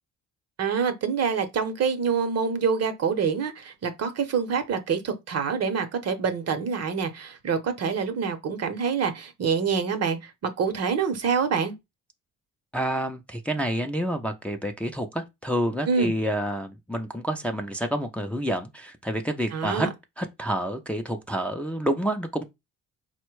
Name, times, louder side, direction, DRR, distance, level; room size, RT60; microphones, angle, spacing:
voice 1, 0.6-11.7 15.9-16.1 19.5-19.9, right 6 dB, 55° right, 0.8 m, -26 dB
voice 2, 12.7-19.9 20.2-22.4, right 1 dB, 5° left, 0.5 m, -28 dB
4.3 x 2.2 x 4.6 m
cardioid pair, 90°, 30 cm